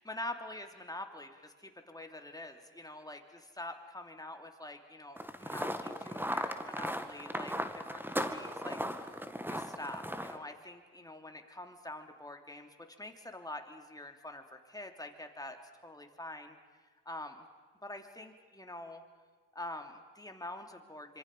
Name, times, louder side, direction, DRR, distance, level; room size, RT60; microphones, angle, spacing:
voice 1, 0.0-9.2 9.5-15.6 15.8-16.6 17.0-17.4 17.8-19.0 19.5-21.2, left 1 dB, 10° left, 4 dB, 3.0 m, -45 dB
sound 1, 5.2-10.4, equal, 5° right, 1.9 m, -37 dB
26.0 x 25.5 x 5.5 m, 1.5 s
hypercardioid pair, 50°, 37 cm